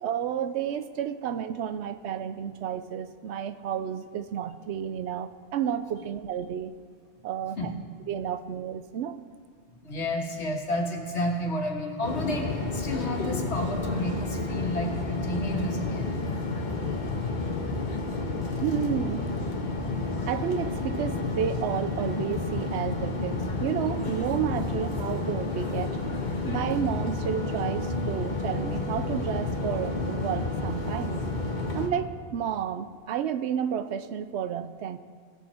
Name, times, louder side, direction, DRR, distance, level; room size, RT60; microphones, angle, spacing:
voice 1, 0.0-6.7 7.2-7.7 8.1-9.2 18.6-19.3 20.3-26.0 26.4-31.2 31.7-35.0, right 9 dB, 85° right, 12 dB, 0.9 m, -31 dB
voice 2, 9.8-16.1, left 1 dB, 85° left, 1 dB, 1.7 m, -31 dB
sound 1, 12.0-31.9, left 3 dB, 45° left, 1.3 m, -30 dB
18.5 x 6.5 x 4.3 m, 2.1 s
omnidirectional pair, 1.1 m